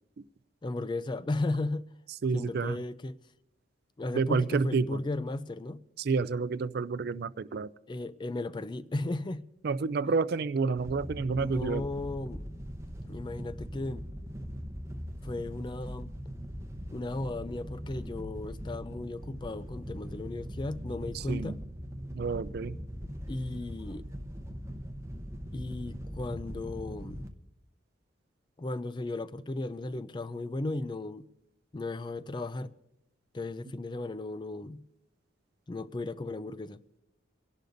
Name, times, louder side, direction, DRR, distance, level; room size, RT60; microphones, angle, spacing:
voice 1, 0.6-1.9 2.3-3.2 4.0-5.8 7.9-9.5 11.3-12.5 13.1-14.0 15.2-16.1 16.9-21.6 23.3-24.0 25.5-27.2 28.6-31.3 31.7-32.7 33.3-34.8 35.7-36.8, left 2 dB, 25° left, 0.4 m, -35 dB
voice 2, 2.2-2.8 4.1-5.0 6.0-7.7 9.6-11.8 21.3-21.5 22.1-22.8, right 4 dB, 55° right, 0.4 m, -29 dB
Wind / Boat Water vehicle, 10.8-27.3, equal, 15° right, 0.8 m, -41 dB
27.5 x 11.5 x 2.6 m
head